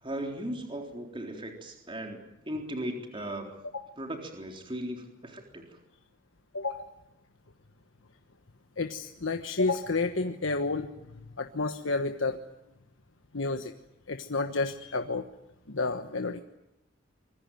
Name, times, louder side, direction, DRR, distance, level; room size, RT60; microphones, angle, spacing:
voice 1, 0.0-2.2 2.5-3.6 4.0-5.7, right 1 dB, 25° right, 2 dB, 3.9 m, -37 dB
voice 2, 6.5-6.9 8.8-11.1 11.4-12.4 13.3-13.7 14.1-15.3 15.7-16.4, left 3 dB, 90° left, 6 dB, 1.3 m, -30 dB
25.5 x 23.0 x 9.3 m, 0.87 s
head